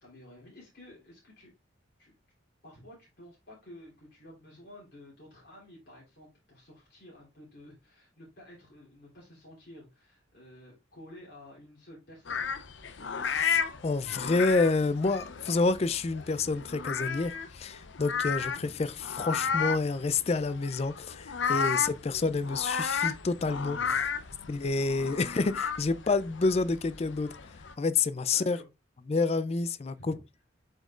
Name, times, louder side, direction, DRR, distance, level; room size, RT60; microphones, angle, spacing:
voice 1, 0.0-1.5 2.0-2.1 2.6-12.7 18.4-18.8 21.9-22.0 23.7-23.9 24.2-24.7 25.0-25.1 28.3-28.7 29.9-30.2, left 1 dB, 55° left, 3.3 m, -52 dB
sound 1, 12.3-27.7, left 6 dB, 70° left, 0.7 m, -33 dB
voice 2, 13.2-23.8 24.5-27.4 27.8-28.6 29.1-30.1, left 3 dB, 30° left, 0.4 m, -28 dB
7.4 x 5.2 x 2.4 m
head